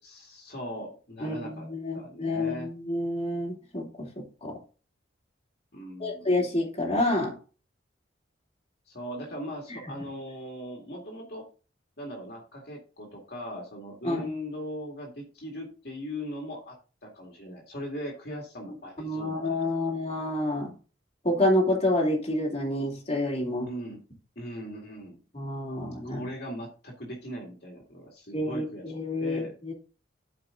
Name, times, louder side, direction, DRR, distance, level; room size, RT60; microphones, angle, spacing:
voice 1, 0.0-1.7 1.9-2.7 5.7-6.3 8.9-11.5 12.0-16.8 17.0-19.8 23.6-24.0 24.4-25.2 26.0-28.9 29.2-29.5, equal, 55° left, -1 dB, 2.2 m, -39 dB
voice 2, 1.2-4.6 6.0-7.4 14.0-14.2 19.0-20.7 21.2-23.7 25.3-26.2 28.3-29.7, left 1 dB, 30° left, -2 dB, 3.0 m, -28 dB
12.5 x 4.9 x 3.8 m, 0.35 s
head